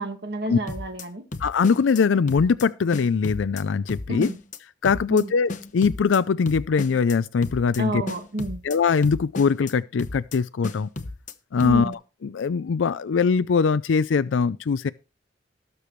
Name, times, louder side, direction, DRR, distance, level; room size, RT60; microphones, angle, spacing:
voice 1, 0.0-1.2 4.1-4.4 5.1-5.3 7.8-8.6 11.6-11.9, right 1 dB, 60° right, 1.6 m, -30 dB
sound 1, 0.7-1.0 1.3-2.0 2.3-2.6 2.9-3.6 3.9-4.6 4.8-5.2 5.5-6.2 6.5-7.1 7.4-7.8 8.1-8.8 9.0-9.7 10.0-10.4 10.6-11.3 11.6-11.9, left 2 dB, 45° left, 1.0 m, -34 dB
voice 2, 1.4-4.3 4.8-8.0 8.6-10.9 11.5-14.9, left 5 dB, 90° left, 0.4 m, -22 dB
19.0 x 6.8 x 3.1 m
head